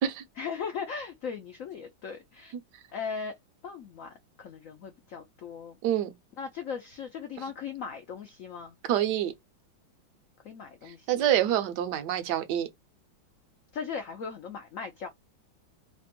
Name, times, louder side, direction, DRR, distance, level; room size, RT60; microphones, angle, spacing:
voice 1, 0.4-2.5 2.9-3.4 3.6-5.8 6.4-8.8 10.4-11.1 13.7-15.1, left 6 dB, 85° left, 0.7 m, -38 dB
voice 2, 5.8-6.1 8.9-9.3 11.1-12.7, right 11 dB, 70° right, 1.2 m, -26 dB
3.3 x 2.1 x 2.8 m
omnidirectional pair, 2.1 m